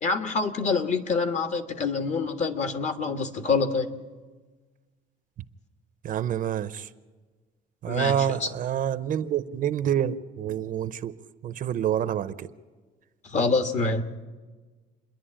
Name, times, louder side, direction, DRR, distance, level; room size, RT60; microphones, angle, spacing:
voice 1, 0.0-3.9 7.8-8.5 13.2-14.0, left 4 dB, 45° left, 1.6 m, -26 dB
voice 2, 6.0-6.9 7.8-11.1 11.4-12.5, right 10 dB, 55° right, 0.8 m, -27 dB
28.0 x 10.5 x 8.9 m
cardioid pair, 110°, 17 cm